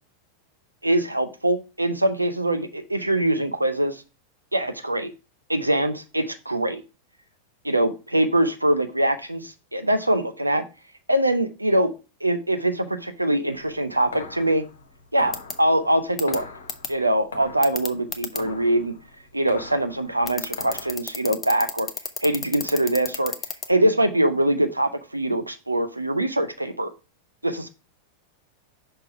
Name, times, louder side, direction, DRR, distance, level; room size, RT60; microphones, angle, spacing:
voice 1, 0.8-4.0 4.5-5.1 5.5-6.8 7.6-10.6 11.1-11.9 12.2-14.6 15.1-16.5 16.9-18.9 19.3-21.9 22.2-23.3 23.7-26.9 27.4-27.7, right 1 dB, 85° right, 8 dB, 0.6 m, -23 dB
sound 1, 13.5-20.9, left 4 dB, 70° left, 1.0 m, -42 dB
sound 2, 15.3-15.5 16.2-16.4 16.7-16.9 17.6-18.4 20.3-23.7, left 6 dB, 20° left, 0.8 m, -29 dB
6.1 x 3.2 x 5.8 m, 0.30 s
figure-of-eight pair, 90°, 0 cm